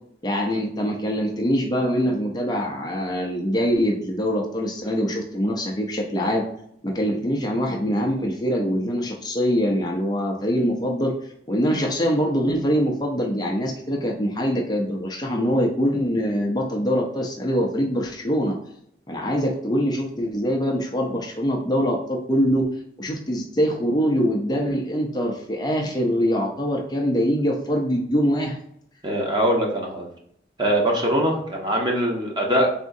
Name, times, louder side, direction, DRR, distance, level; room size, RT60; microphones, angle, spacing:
voice 1, 0.2-6.5 6.8-11.1 11.5-18.6 19.1-22.7 23.0-28.6, equal, 25° left, 0 dB, 0.5 m, -23 dB
voice 2, 29.0-30.1 30.6-32.7, equal, 25° right, -1 dB, 0.9 m, -22 dB
4.1 x 3.5 x 2.7 m, 0.72 s
head